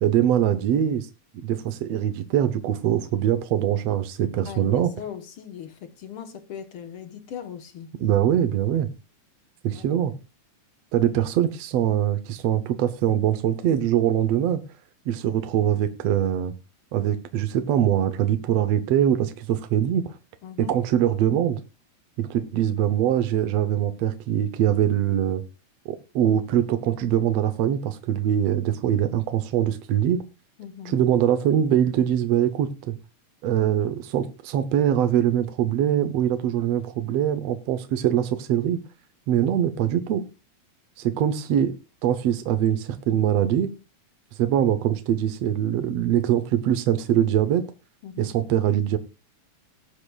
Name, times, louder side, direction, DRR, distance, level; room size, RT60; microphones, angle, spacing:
voice 1, 0.0-1.1 1.4-4.9 8.0-8.9 9.6-10.1 10.9-14.6 15.1-16.5 16.9-20.1 20.6-21.6 22.2-25.4 25.8-30.2 30.8-33.0 33.4-38.8 39.3-40.2 41.0-41.8 42.0-43.7 44.3-47.7 48.2-49.0, right 10 dB, 70° right, 1.7 m, -23 dB
voice 2, 4.5-7.9 9.7-9.8 20.4-20.7 30.6-31.0 48.0-48.3, left 8 dB, 60° left, 1.6 m, -39 dB
19.0 x 8.8 x 2.3 m
omnidirectional pair, 3.5 m